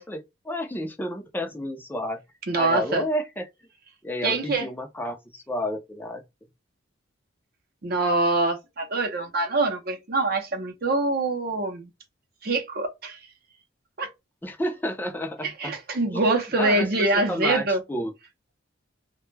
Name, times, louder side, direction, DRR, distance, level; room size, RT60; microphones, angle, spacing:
voice 1, 0.0-2.2 2.5-3.5 4.0-6.2 14.4-15.7 16.1-16.2 16.6-18.1, equal, 10° left, 0.4 m, -31 dB
voice 2, 2.5-3.0 4.2-4.7 7.8-11.9 12.4-13.2 14.0-14.1 15.4-17.8, right 2 dB, 45° right, 0.6 m, -24 dB
2.2 x 2.1 x 3.1 m
head